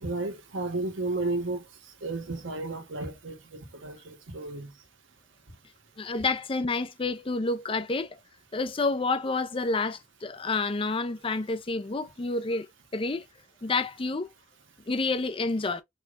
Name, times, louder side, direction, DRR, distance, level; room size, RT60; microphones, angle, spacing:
voice 1, 0.0-1.6 2.0-4.7, right 2 dB, 90° right, 1.4 m, -33 dB
voice 2, 6.0-8.1 8.5-12.7 12.9-13.2 13.6-14.3 14.9-15.8, left 3 dB, 30° left, 0.5 m, -29 dB
4.5 x 3.3 x 2.5 m
head